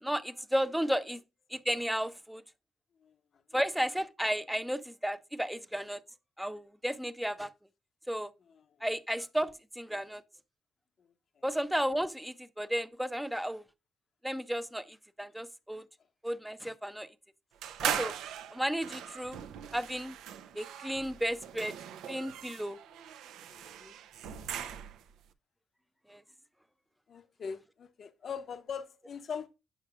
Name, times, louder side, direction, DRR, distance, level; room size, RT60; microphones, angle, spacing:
voice 1, 0.0-1.2 1.5-2.4 3.5-6.0 6.4-7.5 8.1-8.3 8.8-10.2 11.4-13.6 14.2-15.8 16.2-17.1 17.8-18.1 18.5-19.4 19.7-20.1 20.5-21.7 22.1-22.8 26.1-26.2, equal, 5° right, 0.5 m, -33 dB
sound 1, 17.6-25.1, right 9 dB, 85° right, 0.5 m, -40 dB
voice 2, 23.5-24.0 27.1-29.5, left 6 dB, 55° left, 0.7 m, -42 dB
8.1 x 5.7 x 2.4 m
cardioid pair, 90°, 0 cm